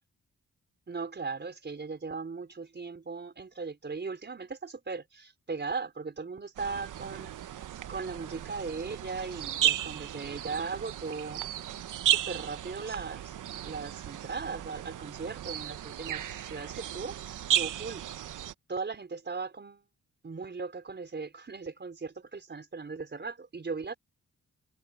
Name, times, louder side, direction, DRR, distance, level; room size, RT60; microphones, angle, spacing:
voice 1, 0.9-7.6 7.9-11.4 12.0-13.3 13.6-18.0 18.7-19.8 20.2-23.9, right 4 dB, 35° right, 4.7 m, -38 dB
sound 1, 6.6-18.5, right 11 dB, 85° right, 0.8 m, -34 dB
wide cardioid pair, 110°, 30 cm